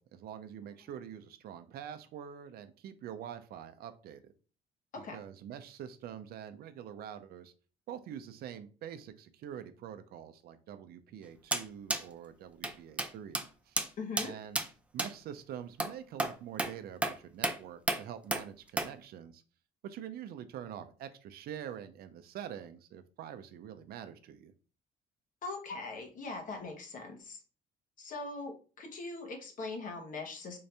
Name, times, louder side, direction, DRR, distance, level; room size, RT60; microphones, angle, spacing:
voice 1, 0.0-4.3 5.0-7.5 7.9-13.4 13.7-13.9 14.2-14.6 14.9-19.4 19.8-24.5, right 9 dB, 65° right, 10 dB, 0.5 m, -45 dB
sound 1, 11.5-11.6 11.9-12.0 12.6-12.7 13.0-13.1 13.3-13.4 13.8-13.9 14.2-14.3 14.5-14.7 15.0-15.1 15.8-15.9 16.2-16.3 16.6-16.7 17.0-17.1 17.4-17.6 17.9-18.0 18.3-18.4 18.8-18.9, right 2 dB, 5° right, 0.4 m, -31 dB
voice 2, 14.0-14.3 25.4-27.4 28.0-30.6, left 3 dB, 50° left, 3 dB, 1.2 m, -41 dB
3.8 x 2.7 x 3.3 m, 0.37 s
cardioid pair, 110°, 17 cm